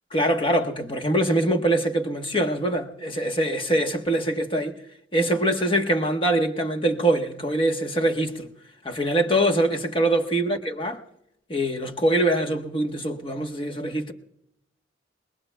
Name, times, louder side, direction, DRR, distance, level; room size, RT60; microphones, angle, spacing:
voice 1, 0.1-4.7 5.1-8.5 8.8-11.0 11.5-14.1, right 1 dB, 30° left, 1.2 m, -23 dB
29.5 x 20.5 x 2.3 m
head